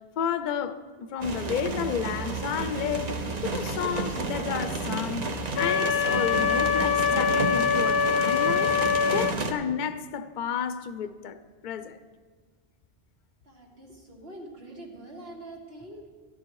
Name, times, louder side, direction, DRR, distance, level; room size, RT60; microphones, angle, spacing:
voice 1, 0.2-3.2 3.4-8.7 9.1-11.4 11.6-12.0, left 7 dB, 55° left, 0.7 m, -32 dB
sound 1, 1.2-9.5, right 3 dB, 45° right, 0.9 m, -31 dB
Wind instrument woodwind instrument, 5.6-9.4, left 6 dB, 75° left, 0.9 m, -24 dB
voice 2, 13.4-16.1, right 1 dB, 70° right, 2.4 m, -44 dB
13.0 x 11.5 x 4.7 m
omnidirectional pair, 1.1 m